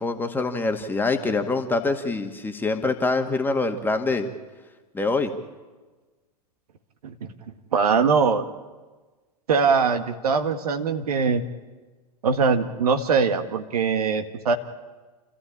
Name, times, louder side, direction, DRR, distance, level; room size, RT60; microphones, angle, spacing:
voice 1, 0.0-4.3 4.9-5.3, left 3 dB, 10° left, 5 dB, 1.8 m, -25 dB
voice 2, 7.7-8.4 9.5-11.4 12.2-14.5, right 5 dB, 65° right, 8 dB, 1.6 m, -22 dB
28.5 x 14.0 x 8.7 m, 1.3 s
figure-of-eight pair, 95°, 21 cm